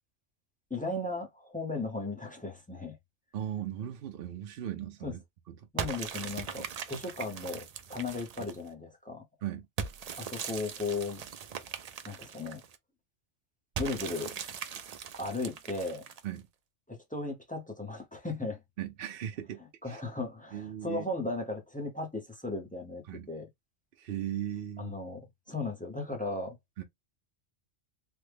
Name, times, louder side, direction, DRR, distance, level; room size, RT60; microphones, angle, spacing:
voice 1, 0.7-3.0 5.0-5.1 5.7-7.6 7.9-9.2 10.2-11.2 12.1-12.6 13.8-14.3 15.2-16.1 16.9-18.6 19.8-23.5 24.8-25.2 25.5-26.6, left 2 dB, 10° left, 0.6 m, -36 dB
voice 2, 3.3-5.2 9.4-9.7 16.2-16.4 18.8-19.6 19.9-20.0 20.5-21.0 23.1-23.3 24.0-25.0 26.8-26.9, right 11 dB, 60° right, 0.7 m, -37 dB
sound 1, 5.8-8.7 9.8-12.8 13.8-16.4, right 7 dB, 85° right, 0.3 m, -40 dB
3.4 x 2.1 x 3.2 m
omnidirectional pair, 1.2 m